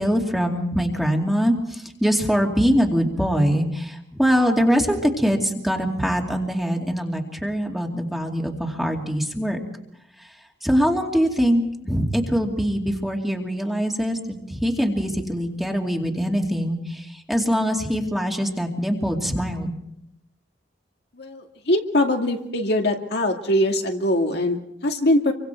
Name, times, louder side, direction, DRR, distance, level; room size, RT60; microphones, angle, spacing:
voice 1, 0.0-9.6 10.6-19.7, equal, ahead, 1 dB, 2.6 m, -23 dB
voice 2, 21.1-25.3, left 1 dB, 65° left, 2 dB, 2.3 m, -22 dB
28.0 x 24.5 x 4.6 m, 0.79 s
head